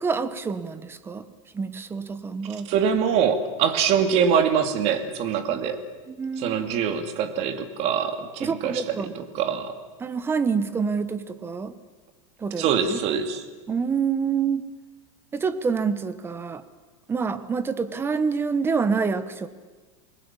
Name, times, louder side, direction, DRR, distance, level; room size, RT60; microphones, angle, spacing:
voice 1, 0.0-1.2 1.5-2.7 6.1-6.6 8.4-9.1 10.0-11.7 12.4-12.6 12.9-13.0 13.7-14.6 15.3-16.6 17.1-19.5, right 5 dB, 15° right, 13 dB, 1.2 m, -27 dB
voice 2, 2.7-5.8 6.4-9.7 12.6-13.4, right 7 dB, 40° right, 8 dB, 2.5 m, -24 dB
28.5 x 21.5 x 7.4 m, 1.3 s
supercardioid pair, 150°, 17 cm